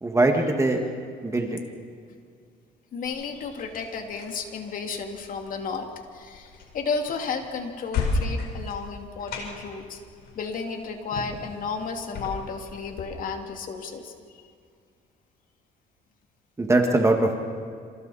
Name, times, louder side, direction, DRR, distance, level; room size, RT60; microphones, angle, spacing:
voice 1, 0.0-0.8 1.2-1.6 16.6-17.4, right 2 dB, 15° right, 3 dB, 2.1 m, -21 dB
voice 2, 2.9-10.0 10.3-14.1, left 5 dB, 55° left, 4 dB, 2.7 m, -33 dB
sound 1, 3.1-13.1, left 3 dB, 75° left, 4.8 m, -35 dB
28.0 x 27.5 x 4.3 m, 2.2 s
cardioid pair, 110°, 17 cm